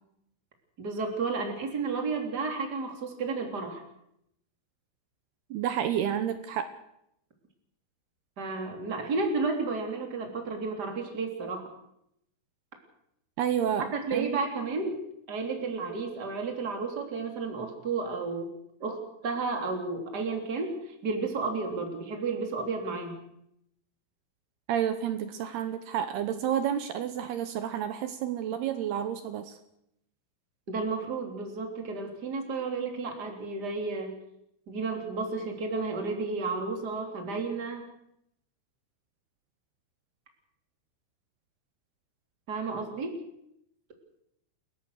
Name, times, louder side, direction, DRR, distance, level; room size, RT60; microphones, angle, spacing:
voice 1, 0.8-3.8 8.4-11.6 13.9-14.9 15.3-18.5 18.8-20.8 21.0-23.2 30.7-34.2 34.7-37.9 42.5-43.2, right 4 dB, 25° right, 3 dB, 3.1 m, -32 dB
voice 2, 5.5-6.7 13.4-14.3 24.7-29.6, right 9 dB, 75° right, 10 dB, 2.4 m, -30 dB
29.0 x 15.0 x 6.6 m, 0.77 s
omnidirectional pair, 5.9 m